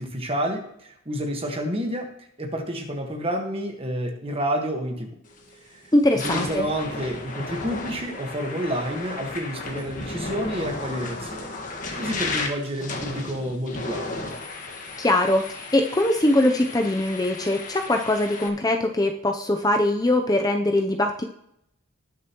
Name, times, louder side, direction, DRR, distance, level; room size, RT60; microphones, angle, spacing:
voice 1, 0.0-2.1 2.4-5.2 5.7-11.6 12.0-14.3, equal, 25° right, 3 dB, 1.5 m, -29 dB
sound 1, 5.3-5.5 6.0-18.5, left 3 dB, 35° left, 1.6 m, -34 dB
voice 2, 5.9-6.7 15.0-21.2, left 1 dB, 15° left, 4 dB, 0.6 m, -22 dB
19.5 x 6.8 x 3.0 m, 0.76 s
head